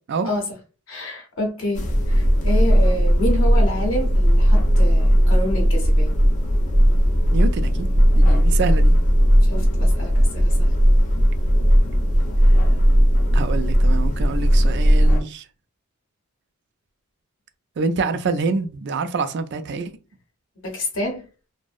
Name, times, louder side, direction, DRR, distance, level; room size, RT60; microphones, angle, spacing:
voice 1, 0.9-6.1 9.4-10.7 20.6-21.2, left 1 dB, 65° left, 0.7 m, -28 dB
sound 1, 1.7-15.2, equal, 35° left, 0.4 m, -17 dB
voice 2, 7.3-8.9 13.3-15.4 17.8-19.9, right 4 dB, 55° right, 0.4 m, -26 dB
2.6 x 2.0 x 2.3 m
head